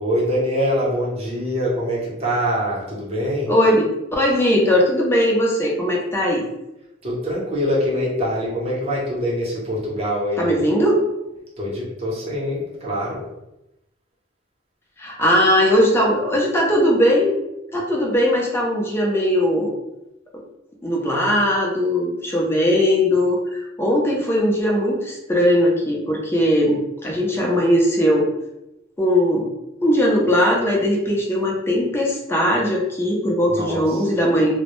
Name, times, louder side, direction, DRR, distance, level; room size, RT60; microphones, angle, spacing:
voice 1, 0.0-3.5 7.0-10.6 11.6-13.2 33.5-34.1, equal, 30° right, -6 dB, 0.8 m, -24 dB
voice 2, 3.5-3.9 4.1-6.4 10.4-11.0 15.0-17.3 17.7-19.7 20.8-28.3 29.0-29.5 29.8-34.5, equal, 10° left, -2 dB, 0.5 m, -19 dB
2.1 x 2.0 x 2.9 m, 0.90 s
head